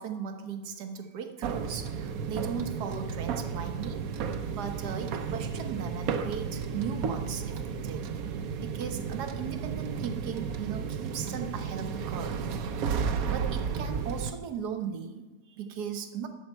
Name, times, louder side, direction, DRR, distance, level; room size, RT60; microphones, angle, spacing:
voice 1, 0.0-4.1 4.5-8.0 8.6-12.4 13.3-16.3, right 7 dB, 85° right, 6 dB, 1.5 m, -37 dB
sound 1, 1.4-14.3, right 6 dB, 70° right, 1.1 m, -33 dB
11.5 x 7.6 x 4.4 m, 1.2 s
omnidirectional pair, 1.7 m